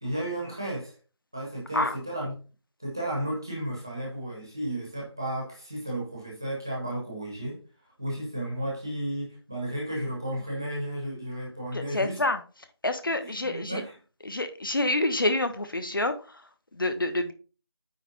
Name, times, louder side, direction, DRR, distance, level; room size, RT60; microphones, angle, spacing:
voice 1, 0.0-0.9 1.3-2.3 2.8-7.6 8.0-12.2 13.2-13.9, right 1 dB, 10° right, 1.0 m, -33 dB
voice 2, 11.7-12.4 12.8-13.8 14.2-17.3, left 2 dB, 50° left, 1.2 m, -28 dB
9.1 x 3.2 x 5.1 m
figure-of-eight pair, 180°, 14 cm